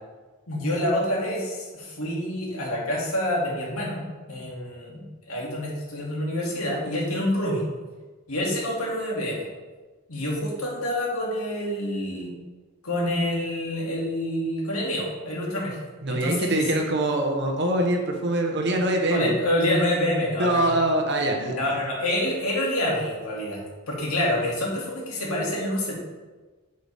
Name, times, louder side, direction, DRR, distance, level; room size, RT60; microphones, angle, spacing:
voice 1, 0.5-4.0 4.3-7.6 8.3-9.4 10.1-12.3 12.8-15.8 16.1-16.6 19.1-20.7 21.6-25.9, left 1 dB, 80° left, -3 dB, 2.6 m, -27 dB
voice 2, 16.0-19.3 20.4-21.6, right 1 dB, 50° right, 2 dB, 1.1 m, -24 dB
8.1 x 8.1 x 3.6 m, 1.3 s
head